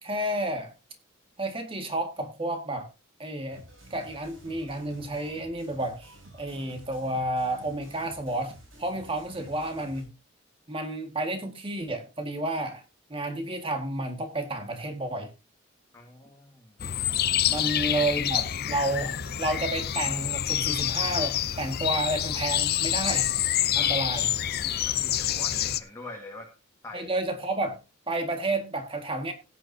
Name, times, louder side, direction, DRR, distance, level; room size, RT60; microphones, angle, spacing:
voice 1, 0.0-0.7 1.4-2.9 3.2-3.6 3.9-8.5 8.8-10.1 10.7-12.8 13.1-15.3 17.5-23.3 23.8-24.3 26.9-27.8 28.1-29.3, right 1 dB, 25° right, 1.8 m, -31 dB
sound 1, 3.5-10.0, right 1 dB, 75° right, 7.4 m, -51 dB
voice 2, 15.9-16.8 17.6-17.7 23.7-24.0 24.6-26.6 26.8-27.1, left 2 dB, 15° left, 1.7 m, -44 dB
sound 2, 16.8-25.8, left 11 dB, 50° left, 0.6 m, -27 dB
16.0 x 9.3 x 2.7 m
head